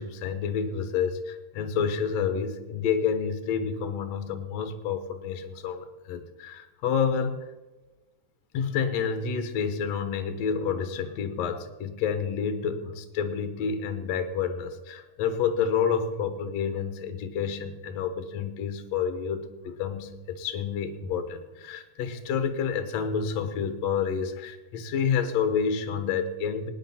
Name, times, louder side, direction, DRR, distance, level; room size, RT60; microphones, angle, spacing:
voice 1, 0.0-7.5 8.5-26.7, left 6 dB, 60° left, 8 dB, 2.1 m, -29 dB
20.0 x 10.0 x 4.2 m, 1.1 s
omnidirectional pair, 3.8 m